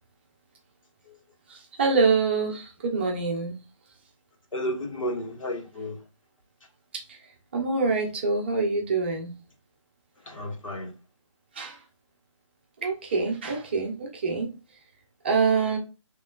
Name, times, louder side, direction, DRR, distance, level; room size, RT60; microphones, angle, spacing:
voice 1, 1.5-3.6 6.9-7.2 7.5-9.4 11.5-11.8 12.8-14.5 15.2-15.8, right 4 dB, 20° right, 0.7 m, -25 dB
voice 2, 4.5-6.0 10.3-10.9, equal, 85° left, 1.7 m, -32 dB
6.0 x 3.0 x 2.4 m
hypercardioid pair, 170°, 17 cm